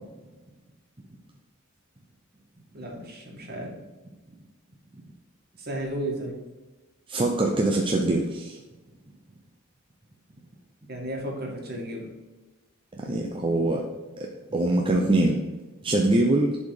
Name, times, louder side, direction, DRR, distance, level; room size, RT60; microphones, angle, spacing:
voice 1, 2.7-3.7 5.6-6.4 10.9-12.0, right 1 dB, 50° right, 0 dB, 2.1 m, -33 dB
voice 2, 7.1-8.6 13.0-13.8 14.2-15.4 15.8-16.6, right 2 dB, 25° right, 0 dB, 0.7 m, -23 dB
10.5 x 4.3 x 4.9 m, 1.2 s
head